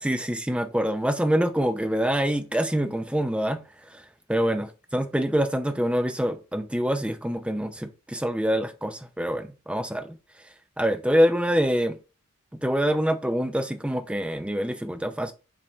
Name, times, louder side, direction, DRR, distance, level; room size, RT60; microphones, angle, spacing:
voice 1, 0.0-3.6 3.9-10.1 10.8-12.0 12.5-15.3, equal, 5° right, 0.6 m, -25 dB
7.5 x 4.2 x 3.2 m
head